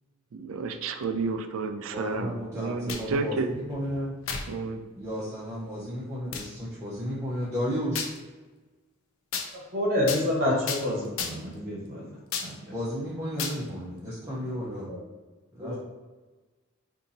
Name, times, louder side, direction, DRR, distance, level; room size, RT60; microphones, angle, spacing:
voice 1, 0.3-3.5 4.5-4.8, right 4 dB, 85° right, 8 dB, 0.4 m, -31 dB
voice 2, 1.9-4.1 5.0-8.1 12.7-14.9 15.5-15.8, equal, 15° right, -9 dB, 0.6 m, -33 dB
sound 1, 2.7-3.2 4.3-4.5 5.2-5.3 6.3-6.5 8.0-8.2 9.3-9.5 10.1-10.3 10.7-10.8 11.2-11.5 12.3-12.5 13.4-13.6, left 6 dB, 70° left, 0.4 m, -32 dB
voice 3, 9.7-12.0 12.4-12.5 14.6-15.0 15.6-15.8, left 1 dB, 45° right, -2 dB, 0.9 m, -28 dB
2.7 x 2.7 x 3.9 m, 1.3 s
head